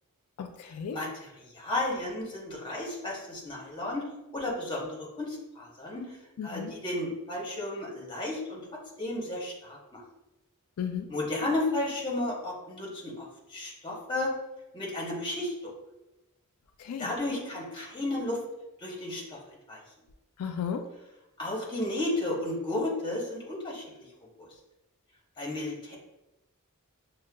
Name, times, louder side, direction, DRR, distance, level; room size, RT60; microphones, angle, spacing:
voice 1, 0.4-1.0 6.4-6.7 10.8-11.1 16.8-17.1 20.4-20.8, left 7 dB, 80° left, 5 dB, 0.3 m, -34 dB
voice 2, 1.5-4.1 4.3-6.2 6.4-10.0 11.1-14.3 14.7-15.7 17.0-18.4 18.8-19.4 19.7-19.8 21.4-23.8 24.4-24.5 25.4-26.0, left 2 dB, 20° left, -3 dB, 0.9 m, -33 dB
6.2 x 2.1 x 2.2 m, 0.94 s
head